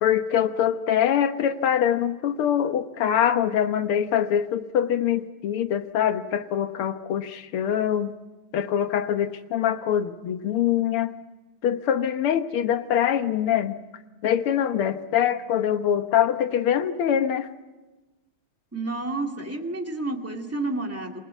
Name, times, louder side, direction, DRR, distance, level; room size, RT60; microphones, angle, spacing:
voice 1, 0.0-8.1 8.5-11.1 11.6-13.8 14.2-17.5, left 9 dB, 80° left, 10 dB, 2.0 m, -24 dB
voice 2, 18.7-21.2, right 2 dB, 5° right, 2 dB, 2.1 m, -30 dB
28.0 x 21.0 x 8.2 m, 1.1 s
omnidirectional pair, 2.4 m